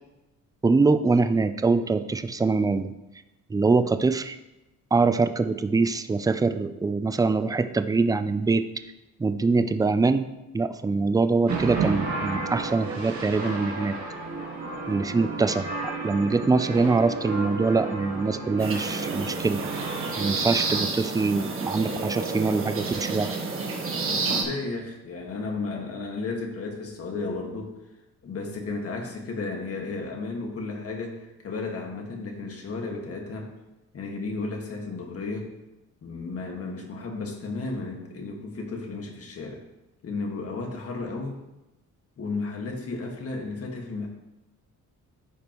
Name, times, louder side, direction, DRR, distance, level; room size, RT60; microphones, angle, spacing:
voice 1, 0.6-2.9 3.5-4.4 4.9-8.7 9.2-10.3 10.5-14.0 14.9-15.7 16.0-19.6 20.2-23.3, right 4 dB, 10° right, 10 dB, 0.4 m, -23 dB
sound 1, 11.5-20.8, right 3 dB, 60° right, 1.7 m, -32 dB
sound 2, 18.6-24.4, right 3 dB, 40° right, 1.4 m, -30 dB
voice 2, 24.1-27.8 28.2-33.5 33.9-35.5 36.0-39.6 40.0-41.4 42.2-44.1, left 3 dB, 45° left, 1 dB, 1.7 m, -33 dB
13.5 x 5.2 x 3.0 m, 0.98 s
cardioid pair, 125°, 33 cm